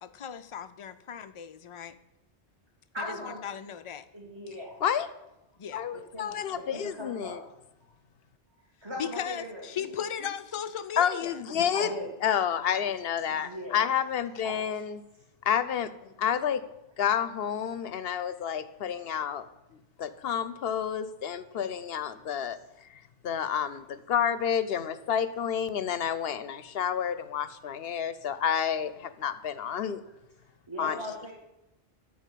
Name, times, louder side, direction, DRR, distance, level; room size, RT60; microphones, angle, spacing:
voice 1, 0.0-2.0 3.0-3.1 3.4-4.0 5.6-5.8 9.0-11.4, left 8 dB, 40° left, 10 dB, 0.5 m, -37 dB
voice 2, 2.9-3.4 4.1-4.7 6.1-7.4 8.8-9.9 11.7-12.1 12.8-12.9 13.4-13.8 14.4-14.8 20.0-20.1 30.0-30.1 30.7-31.3, left 1 dB, 25° right, -2 dB, 1.8 m, -39 dB
voice 3, 5.7-7.4 11.0-11.9 12.2-15.0 15.5-16.6 17.0-19.5 19.7-22.6 22.9-30.0 30.8-31.0, left 8 dB, 70° left, 13 dB, 0.9 m, -30 dB
12.5 x 5.0 x 8.3 m, 0.92 s
omnidirectional pair, 1.1 m